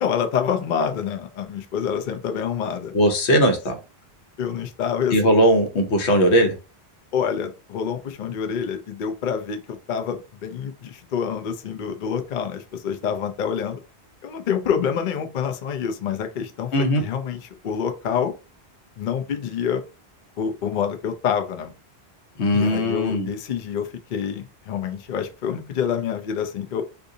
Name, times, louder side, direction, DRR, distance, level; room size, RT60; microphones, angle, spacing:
voice 1, 0.0-2.9 4.4-5.4 7.1-13.8 14.2-16.7 17.0-18.3 19.0-19.8 20.4-21.7 22.5-26.8, left 7 dB, 55° left, 6 dB, 0.6 m, -27 dB
voice 2, 2.9-3.8 5.1-6.5 16.7-17.0 22.4-23.3, equal, 80° left, 5 dB, 1.1 m, -19 dB
3.7 x 2.6 x 2.6 m, 0.31 s
omnidirectional pair, 1.1 m